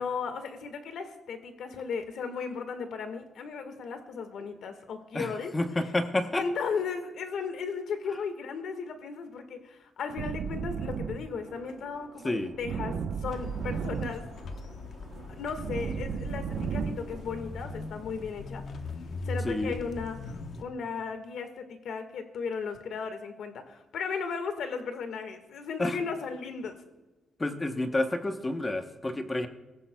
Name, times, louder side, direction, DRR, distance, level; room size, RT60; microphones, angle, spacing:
voice 1, 0.0-5.5 6.4-14.2 15.3-18.6 19.2-26.8, left 5 dB, 75° left, 8 dB, 1.6 m, -36 dB
voice 2, 5.1-6.4 12.2-12.5 19.4-19.7 25.8-26.0 27.4-29.5, left 2 dB, 20° left, 7 dB, 0.9 m, -29 dB
sound 1, 10.2-18.2, right 6 dB, 75° right, 1.0 m, -36 dB
sound 2, 13.3-20.6, left 3 dB, 55° left, 1.0 m, -40 dB
24.0 x 14.5 x 2.3 m, 1.1 s
cardioid pair, 135°, 0 cm